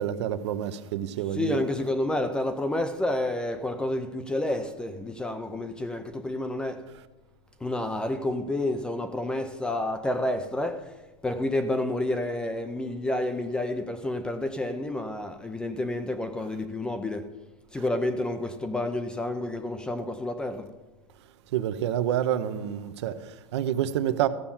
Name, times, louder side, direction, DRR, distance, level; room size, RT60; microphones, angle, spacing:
voice 1, 0.0-1.6 21.5-24.3, right 10 dB, 65° right, 0.8 m, -28 dB
voice 2, 1.3-6.8 7.6-10.9 11.2-17.3 17.7-20.7, left 1 dB, 5° left, 0.4 m, -29 dB
14.5 x 5.8 x 7.1 m
supercardioid pair, 165°, 15 cm